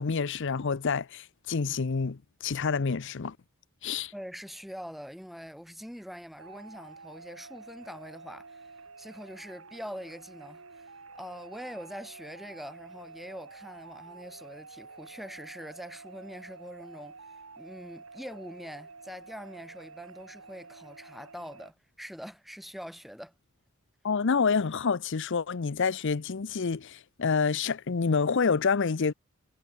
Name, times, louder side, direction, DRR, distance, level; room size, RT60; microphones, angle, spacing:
voice 1, 0.0-3.4 3.8-4.1 24.0-29.1, left 5 dB, 60° left, 0.7 m, -28 dB
voice 2, 4.1-8.7 9.0-17.2 17.6-23.3, equal, ahead, 5.6 m, -44 dB
sound 1, 6.4-21.7, right 4 dB, 85° right, 3.1 m, -49 dB
head